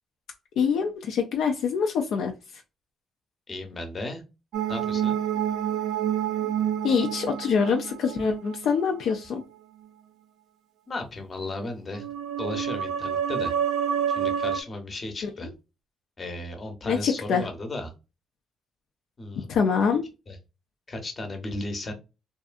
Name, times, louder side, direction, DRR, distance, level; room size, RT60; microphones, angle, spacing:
voice 1, 0.6-2.3 6.8-9.4 15.2-15.5 16.8-17.4 19.5-20.0, left 6 dB, 75° left, 2 dB, 0.4 m, -25 dB
voice 2, 3.5-4.2 4.7-5.1 10.9-12.1 12.4-13.5 14.1-15.5 16.2-17.9 19.2-19.5 20.3-20.4 20.9-21.9, left 2 dB, 35° left, 4 dB, 0.8 m, -35 dB
sound 1, 4.5-9.4 11.9-14.6, right 9 dB, 80° right, 0.3 m, -28 dB
2.6 x 2.3 x 2.4 m, 0.28 s
cardioid pair, 90°, 0 cm